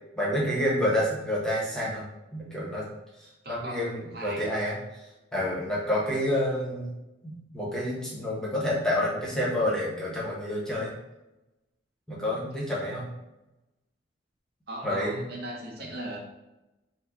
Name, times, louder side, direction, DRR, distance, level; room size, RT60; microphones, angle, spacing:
voice 1, 0.2-2.0 2.3-2.8 3.2-6.9 7.2-10.9 12.1-13.1 14.8-15.3, left 1 dB, 5° left, -6 dB, 1.0 m, -29 dB
voice 2, 3.4-4.6 6.1-6.3 14.7-16.2, right 1 dB, 55° right, -1 dB, 0.8 m, -38 dB
5.4 x 2.2 x 3.9 m, 0.99 s
head